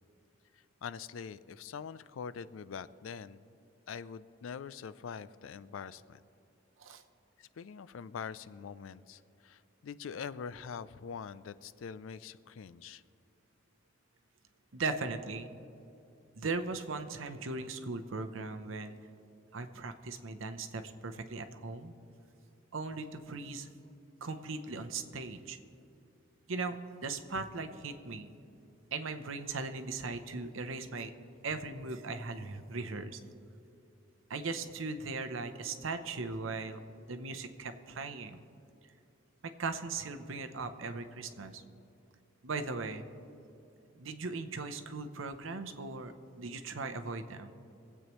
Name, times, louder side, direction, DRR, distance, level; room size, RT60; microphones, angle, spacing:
voice 1, 0.8-3.4 3.9-6.2 7.4-13.0, left 6 dB, 85° left, 16 dB, 0.4 m, -44 dB
voice 2, 14.7-15.5 16.4-19.0 19.5-22.0 22.7-23.7 24.2-25.6 26.5-28.3 28.9-31.1 31.4-33.2 34.3-36.8 37.1-38.4 39.4-41.6 42.4-43.1 44.0-46.1 46.4-47.5, right 3 dB, 85° right, 8 dB, 0.8 m, -38 dB
24.0 x 8.3 x 3.1 m, 2.7 s
head